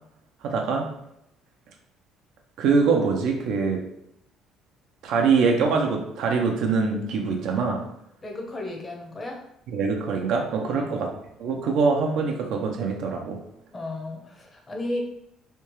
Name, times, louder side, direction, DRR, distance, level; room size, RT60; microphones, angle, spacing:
voice 1, 0.4-0.9 2.6-3.8 5.0-7.8 9.7-11.1 11.4-13.4, right 4 dB, 75° right, 2 dB, 0.6 m, -23 dB
voice 2, 8.2-9.4 10.7-11.0 13.7-15.0, left 2 dB, 20° left, 1 dB, 0.8 m, -34 dB
3.3 x 2.8 x 3.0 m, 0.77 s
cardioid pair, 120°, 0 cm